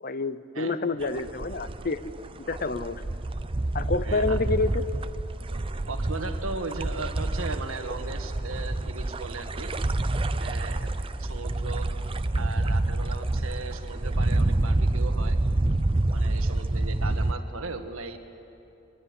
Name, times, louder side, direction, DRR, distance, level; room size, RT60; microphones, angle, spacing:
voice 1, 0.0-2.1 2.5-3.0 3.7-4.8, left 3 dB, 40° left, 13 dB, 0.7 m, -28 dB
sound 1, 1.0-17.3, right 2 dB, 25° right, 0.5 m, -28 dB
voice 2, 4.0-4.4 5.9-9.7 10.4-10.9 11.2-11.9 12.4-15.4 16.1-18.2, right 3 dB, 75° right, 6 dB, 1.7 m, -37 dB
24.0 x 20.0 x 9.9 m, 3.0 s
head